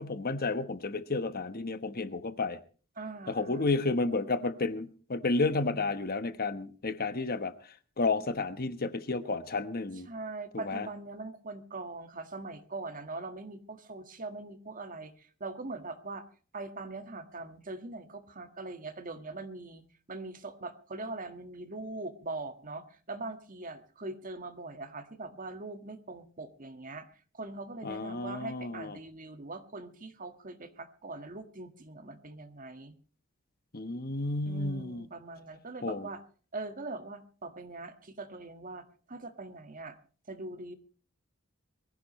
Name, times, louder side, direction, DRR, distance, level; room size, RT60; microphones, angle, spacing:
voice 1, 0.0-2.6 3.3-7.5 8.0-10.1 10.6-10.9 27.8-28.9 33.7-35.0 35.8-36.1, left 3 dB, 45° left, 1.1 m, -31 dB
voice 2, 2.9-3.8 10.1-16.3 16.5-27.1 27.3-32.9 34.4-36.2 36.5-40.0 40.3-40.7, right 3 dB, 40° right, 1.7 m, -42 dB
22.5 x 15.5 x 3.1 m
head